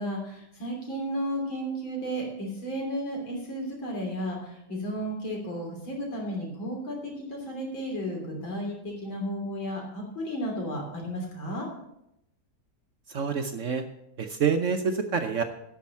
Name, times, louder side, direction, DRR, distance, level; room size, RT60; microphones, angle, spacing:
voice 1, 0.0-11.7, equal, 80° left, 0 dB, 3.9 m, -33 dB
voice 2, 13.1-13.8 14.2-15.4, right 6 dB, 55° right, 6 dB, 0.8 m, -27 dB
11.5 x 6.4 x 7.1 m, 0.81 s
omnidirectional pair, 2.1 m